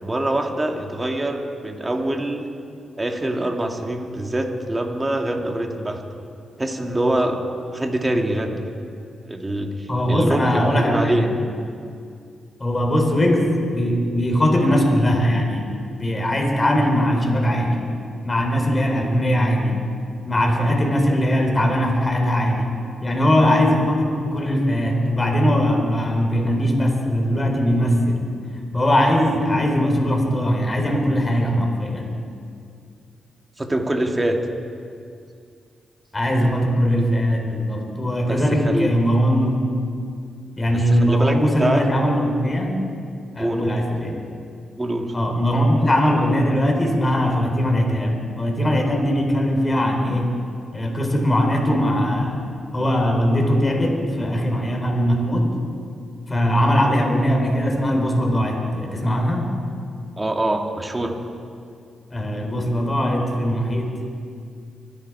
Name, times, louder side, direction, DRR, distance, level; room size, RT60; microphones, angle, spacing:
voice 1, 0.0-2.5 3.0-6.0 6.6-7.4 7.7-8.6 9.3-10.4 10.7-11.2 33.6-34.4 38.3-38.9 40.7-41.9 43.4-43.8 44.8-45.1 60.2-61.1, right 1 dB, 25° right, 3 dB, 2.3 m, -24 dB
voice 2, 9.9-11.3 12.6-15.6 16.0-17.8 18.2-19.8 20.3-22.7 23.0-28.3 28.7-32.2 36.1-39.6 40.6-42.8 43.3-44.2 45.1-50.3 50.7-52.4 52.7-55.5 56.3-59.5 62.1-64.1, equal, 30° left, 2 dB, 4.1 m, -20 dB
25.0 x 10.0 x 4.8 m, 2.3 s
supercardioid pair, 45°, 0 cm